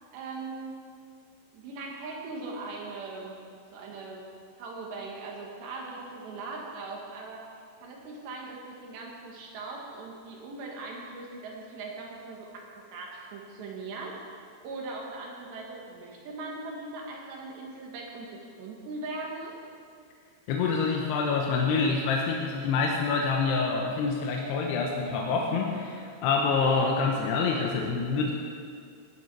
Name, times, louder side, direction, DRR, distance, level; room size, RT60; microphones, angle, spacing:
voice 1, 0.1-0.7 1.5-3.4 3.7-4.3 4.6-7.5 7.8-19.5, right 3 dB, 65° right, -1 dB, 3.7 m, -40 dB
voice 2, 20.5-28.3, left 4 dB, 75° left, 0 dB, 2.7 m, -26 dB
17.0 x 11.0 x 4.7 m, 2.3 s
omnidirectional pair, 5.6 m